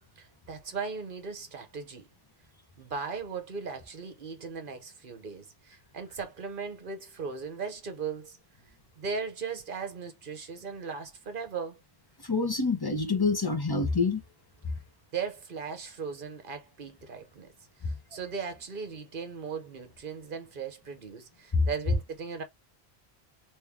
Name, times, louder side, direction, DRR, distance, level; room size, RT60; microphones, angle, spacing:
voice 1, 0.2-2.0 2.8-8.4 9.0-11.8 15.1-17.5 17.8-22.4, right 5 dB, 55° right, 1.1 m, -38 dB
voice 2, 12.2-14.2 21.5-21.6, left 4 dB, 25° left, 0.8 m, -26 dB
3.3 x 2.9 x 3.4 m
omnidirectional pair, 1.1 m